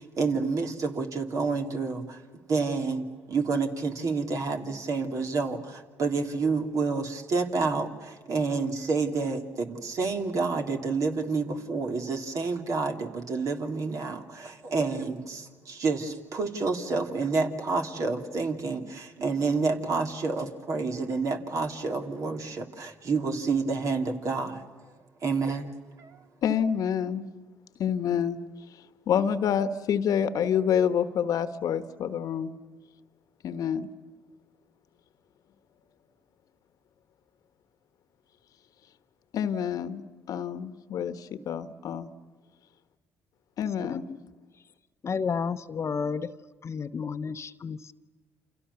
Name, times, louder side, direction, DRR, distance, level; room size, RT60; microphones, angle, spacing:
voice 1, 0.0-2.2 2.5-24.6 25.2-25.7 26.0-26.2, right 4 dB, 55° right, 4 dB, 3.1 m, -29 dB
voice 2, 26.4-27.2 27.8-28.4 29.1-32.5 33.4-33.9 39.3-42.1 43.6-44.1, left 8 dB, 60° left, 12 dB, 1.3 m, -27 dB
voice 3, 43.8-44.2 45.0-46.4 46.6-47.9, left 5 dB, 45° left, 12 dB, 1.0 m, -32 dB
29.0 x 27.5 x 7.0 m, 1.4 s
hypercardioid pair, 55°, 7 cm